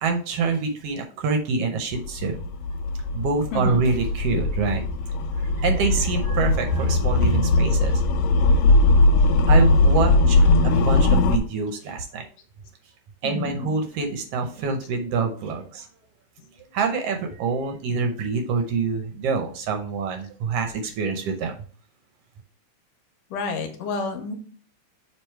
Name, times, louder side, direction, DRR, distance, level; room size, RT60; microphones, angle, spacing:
voice 1, 0.0-2.4 3.1-4.8 5.4-7.9 9.5-12.3 13.2-15.9 16.7-21.5, right 4 dB, 70° right, 4 dB, 1.5 m, -26 dB
sound 1, 1.9-11.4, left 2 dB, 85° left, 1.5 m, -19 dB
voice 2, 3.5-3.8 5.7-5.8 13.2-13.7 23.3-24.4, left 4 dB, 70° left, 5 dB, 1.8 m, -30 dB
6.7 x 3.4 x 4.4 m, 0.42 s
omnidirectional pair, 3.5 m